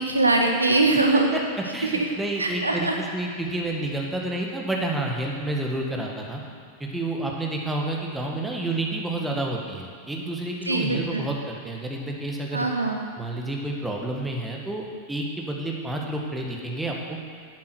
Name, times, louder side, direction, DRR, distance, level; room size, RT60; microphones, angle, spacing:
voice 1, 0.0-1.3 1.8-2.1 2.4-3.0 10.7-11.3 12.5-13.0, right 2 dB, 80° right, 2 dB, 1.1 m, -22 dB
voice 2, 1.7-6.4 6.8-12.7 13.2-17.2, right 2 dB, 10° right, -1 dB, 1.8 m, -29 dB
11.0 x 8.4 x 6.3 m, 2.2 s
figure-of-eight pair, 90°, 0 cm